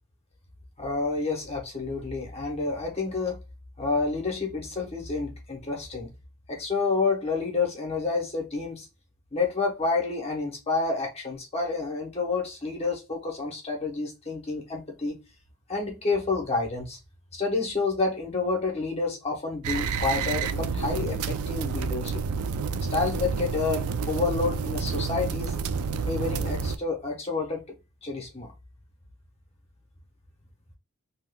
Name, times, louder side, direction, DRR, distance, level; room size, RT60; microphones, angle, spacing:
voice 1, 0.8-3.4 3.8-6.1 6.5-8.9 9.3-15.2 15.7-17.0 17.3-22.1 22.9-25.5 26.1-27.6 28.0-28.5, left 4 dB, 30° left, 0.9 m, -29 dB
sound 1, 19.6-26.8, right 5 dB, 75° right, 0.4 m, -29 dB
3.6 x 2.8 x 2.2 m
head